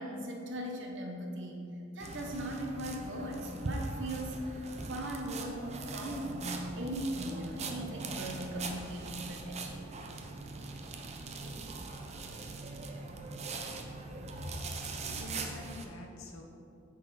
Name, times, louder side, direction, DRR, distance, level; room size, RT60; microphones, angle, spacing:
voice 1, 0.0-9.9, right 1 dB, 65° right, 2 dB, 0.9 m, -39 dB
sound 1, 2.0-15.8, right 3 dB, 35° right, 0.5 m, -41 dB
voice 2, 14.4-16.4, left 1 dB, 90° left, 2 dB, 0.9 m, -44 dB
8.8 x 4.0 x 4.1 m, 2.6 s
head